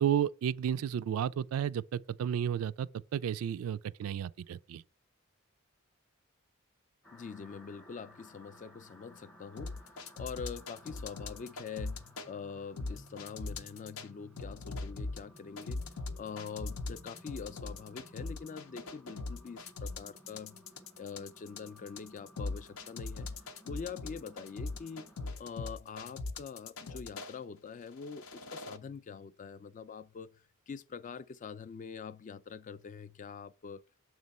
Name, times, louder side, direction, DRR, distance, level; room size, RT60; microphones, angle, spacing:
voice 1, 0.0-4.8, right 9 dB, 90° right, 0.3 m, -32 dB
sound 1, 7.0-25.3, equal, 5° left, 0.7 m, -58 dB
voice 2, 7.1-15.8 16.2-20.6 21.0-23.3 23.6-25.1 25.4-30.3 30.7-33.8, left 6 dB, 35° left, 0.3 m, -44 dB
sound 2, 9.6-12.3 12.8-14.1 14.4-27.3 27.9-28.8, left 3 dB, 85° left, 0.7 m, -40 dB
7.3 x 3.1 x 5.3 m
head